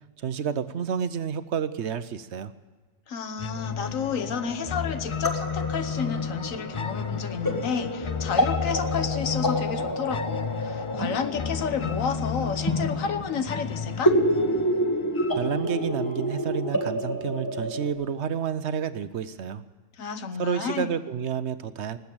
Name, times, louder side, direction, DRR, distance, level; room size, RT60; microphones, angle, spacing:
voice 1, 0.2-2.5 15.4-19.6 20.3-22.0, right 7 dB, 60° right, 12 dB, 1.0 m, -30 dB
voice 2, 3.1-14.2 20.0-20.9, left 6 dB, 90° left, 10 dB, 1.4 m, -31 dB
sound 1, 3.4-16.4, left 6 dB, 50° left, 0.3 m, -33 dB
Synthetic Cave Drips, 4.1-17.9, equal, 15° left, 1.8 m, -29 dB
19.5 x 8.1 x 8.7 m, 1.4 s
omnidirectional pair, 1.3 m